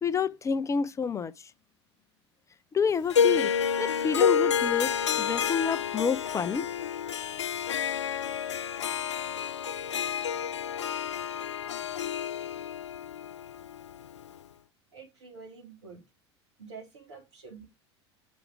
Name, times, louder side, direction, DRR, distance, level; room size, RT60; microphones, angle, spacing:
voice 1, 0.0-1.5 2.7-3.5 3.8-6.6, left 6 dB, 20° left, 0.5 m, -29 dB
Harp, 3.1-14.4, left 7 dB, 85° left, 0.4 m, -29 dB
voice 2, 14.9-16.0 16.6-17.7, right 5 dB, 80° right, 2.9 m, -47 dB
6.1 x 4.8 x 4.6 m
hypercardioid pair, 80°, 15 cm